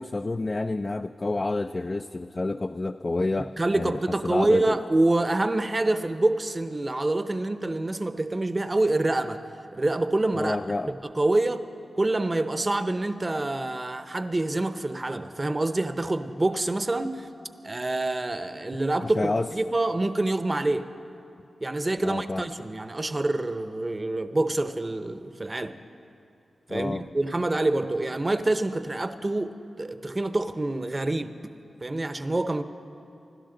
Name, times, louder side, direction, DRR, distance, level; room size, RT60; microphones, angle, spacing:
voice 1, 0.0-4.8 10.3-10.9 19.0-19.5 22.0-22.5 26.7-27.0, left 2 dB, 35° left, 8 dB, 0.3 m, -29 dB
voice 2, 3.6-9.4 9.7-10.6 11.0-11.6 12.0-17.3 17.6-20.9 21.6-25.7 26.7-31.3 31.8-32.6, right 2 dB, 30° right, 10 dB, 0.7 m, -26 dB
27.0 x 12.5 x 3.9 m, 2.7 s
wide cardioid pair, 75°, 0 cm